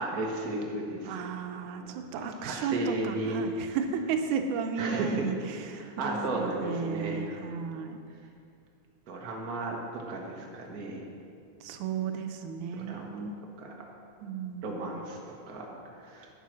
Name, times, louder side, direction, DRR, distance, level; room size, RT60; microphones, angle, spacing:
voice 1, 0.0-1.2 1.8-3.4 4.8-5.2 5.8-7.2 9.1-11.0 12.7-13.1 13.6-13.7 14.6-15.2 15.5-15.7 16.0-16.3, right 2 dB, 40° right, -1 dB, 1.4 m, -34 dB
voice 2, 1.0-8.0 11.6-13.3 14.2-15.0, right 6 dB, 85° right, 6 dB, 2.2 m, -34 dB
9.5 x 9.1 x 6.2 m, 2.3 s
omnidirectional pair, 3.4 m